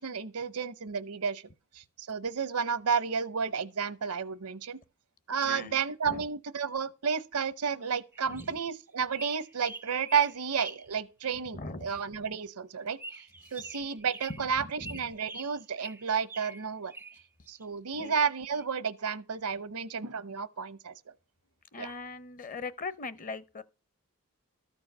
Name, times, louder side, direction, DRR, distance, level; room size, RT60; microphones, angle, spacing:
voice 1, 0.0-1.4 1.7-4.8 5.3-13.3 13.5-16.9 17.5-21.1 21.8-21.9, right 6 dB, 80° right, 0.9 m, -32 dB
voice 2, 5.4-6.3 8.3-8.4 11.5-11.9 13.4-13.5 14.3-14.5 14.8-15.0 17.9-18.1 21.7-23.6, left 3 dB, 35° left, 0.7 m, -40 dB
sound 1, 8.1-8.6 9.1-10.9 11.3-11.4 13.0-14.5 14.8-17.6 18.0-18.6, right 2 dB, 10° right, 0.4 m, -46 dB
13.0 x 4.6 x 6.6 m
head